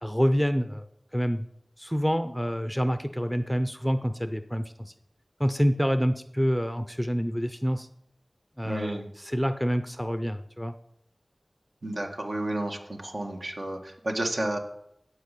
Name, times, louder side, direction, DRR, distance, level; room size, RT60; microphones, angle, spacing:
voice 1, 0.0-0.9 1.1-1.5 1.8-4.9 5.4-7.9 8.6-10.7, equal, ahead, 10 dB, 0.6 m, -27 dB
voice 2, 8.6-9.1 11.8-14.6, right 1 dB, 60° right, 2 dB, 1.7 m, -31 dB
12.5 x 4.8 x 8.3 m, 0.77 s
wide cardioid pair, 65°, 0 cm